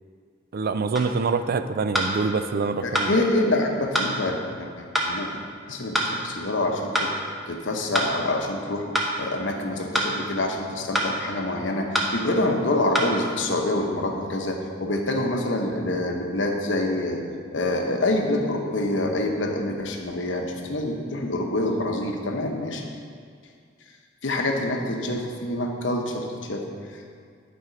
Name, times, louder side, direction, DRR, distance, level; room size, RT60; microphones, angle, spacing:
voice 1, 0.5-3.1, right 4 dB, 50° right, 10 dB, 0.4 m, -25 dB
sound 1, 1.0-1.1 1.9-2.1 2.9-3.1 3.9-4.1 4.9-5.1 5.9-6.1 6.9-7.1 7.9-8.1 8.9-9.1 9.9-10.1 10.9-11.1 11.9-12.1 12.9-13.1, equal, ahead, 0.9 m, -24 dB
voice 2, 2.8-5.3 5.7-7.1 7.5-8.9 9.2-17.2 17.5-22.8 24.2-26.7, left 1 dB, 75° left, 2 dB, 0.9 m, -26 dB
11.0 x 4.2 x 5.1 m, 2.2 s
head